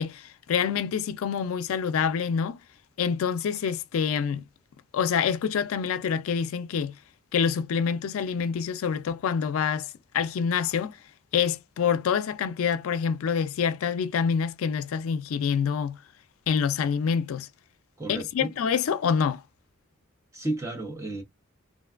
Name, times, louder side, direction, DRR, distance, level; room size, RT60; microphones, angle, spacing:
voice 1, 0.0-2.6 3.0-4.4 4.9-6.9 7.3-11.0 11.3-16.0 16.5-17.5 18.1-19.4, left 7 dB, 80° left, 0.3 m, -26 dB
voice 2, 18.0-18.5 20.3-21.2, right 2 dB, 15° right, 0.7 m, -32 dB
2.4 x 2.2 x 2.4 m
head